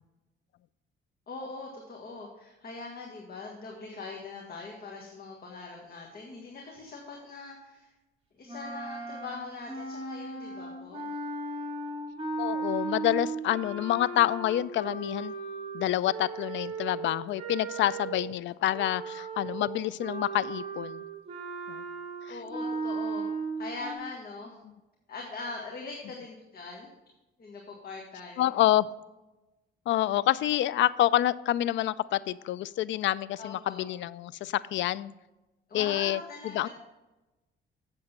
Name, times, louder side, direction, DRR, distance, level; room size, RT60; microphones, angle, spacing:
voice 1, 1.3-7.9 8.3-11.2 22.3-23.3 23.6-24.6 25.1-26.9 27.4-28.5 33.4-33.8 35.7-36.7, left 3 dB, 50° left, 0 dB, 1.7 m, -42 dB
sound 1, 8.5-18.3 18.7-23.9, right 3 dB, 30° right, 2.7 m, -36 dB
voice 2, 12.4-15.3 15.7-21.0 21.7-21.8 22.3-22.4 28.4-28.9 29.9-35.1 35.7-36.2 36.5-36.7, left 13 dB, 70° left, 18 dB, 0.4 m, -27 dB
8.0 x 7.4 x 4.3 m, 1.0 s
cardioid pair, 90°, 20 cm